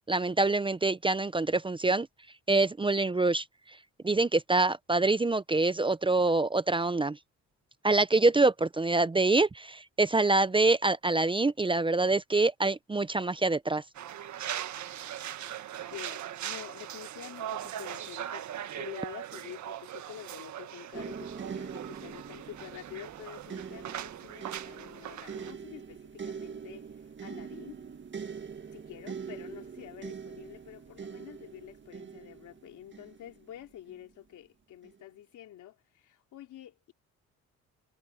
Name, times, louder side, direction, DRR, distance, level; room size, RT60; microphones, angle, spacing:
voice 1, 0.1-2.1 2.5-3.4 4.0-7.2 7.8-13.8, right 3 dB, 15° right, 0.7 m, -25 dB
sound 1, 13.9-25.5, right 11 dB, 70° right, 1.7 m, -40 dB
voice 2, 15.9-18.4 18.8-26.9 27.2-27.8 28.7-36.9, left 12 dB, 80° left, 3.4 m, -48 dB
sound 2, 20.9-34.0 34.8-35.0, right 6 dB, 40° right, 1.8 m, -43 dB
cardioid pair, 90°, 30 cm